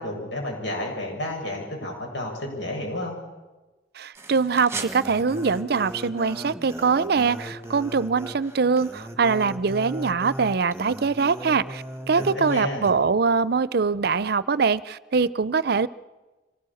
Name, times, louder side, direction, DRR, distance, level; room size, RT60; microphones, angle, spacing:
voice 1, 0.0-3.2 12.2-12.9, left 1 dB, 85° left, 1 dB, 6.9 m, -31 dB
voice 2, 4.0-15.9, right 5 dB, 60° right, 18 dB, 0.6 m, -23 dB
sound 1, 4.1-12.9, right 1 dB, 15° right, 1.6 m, -37 dB
24.5 x 17.0 x 7.1 m, 1.2 s
head